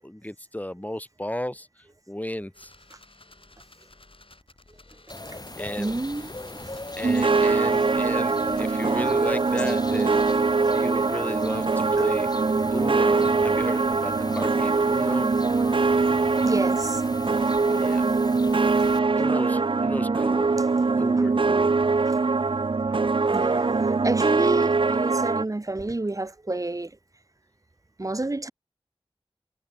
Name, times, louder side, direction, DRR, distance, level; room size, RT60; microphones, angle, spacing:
voice 1, 0.0-2.7 5.6-6.0 7.0-10.4 10.7-12.3 12.7-15.3 17.7-18.0 19.2-20.5 21.0-21.7, left 1 dB, 15° left, 6.2 m, -34 dB
sound 1, 2.5-10.4, left 2 dB, 65° left, 7.8 m, -52 dB
sound 2, 5.1-19.0, left 2 dB, 45° left, 5.5 m, -39 dB
voice 2, 5.8-6.3 6.6-6.8 16.4-17.0 20.6-20.7 21.0-21.3 22.1-22.2 22.9-23.0 23.3-27.0 28.0-28.5, right 2 dB, 35° right, 0.8 m, -30 dB
sound 3, 7.0-25.4, right 4 dB, 60° right, 0.5 m, -22 dB
wide cardioid pair, 55°, 10 cm